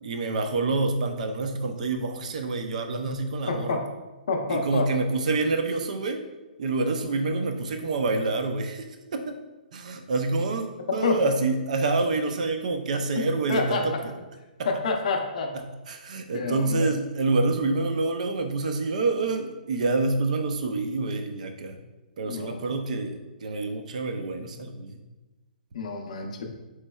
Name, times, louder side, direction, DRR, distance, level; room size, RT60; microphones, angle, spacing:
voice 1, 0.0-3.8 4.5-6.2 6.6-8.9 9.1-9.4 9.7-13.9 15.9-21.8 22.2-25.0, right 3 dB, 50° right, 6 dB, 0.4 m, -27 dB
voice 2, 3.5-3.8 4.3-4.9 11.0-11.2 13.1-13.2 13.5-14.0 14.6-15.5 16.3-16.9 22.2-22.6 25.7-26.4, left 3 dB, 50° left, 3 dB, 0.5 m, -28 dB
4.3 x 3.1 x 2.2 m, 1.1 s
hypercardioid pair, 170°, 5 cm